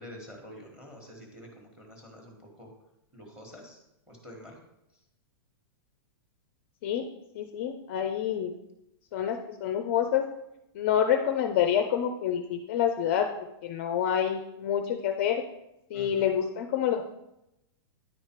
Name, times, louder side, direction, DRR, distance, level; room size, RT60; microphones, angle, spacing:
voice 1, 0.0-2.7 3.1-3.8 4.1-4.6 15.9-16.3, equal, 5° right, 1 dB, 1.3 m, -47 dB
voice 2, 7.3-8.5 9.1-10.2 10.7-13.3 13.6-15.4 15.9-17.0, left 9 dB, 30° left, 6 dB, 0.4 m, -27 dB
9.6 x 4.9 x 4.4 m, 0.88 s
supercardioid pair, 180°, 13 cm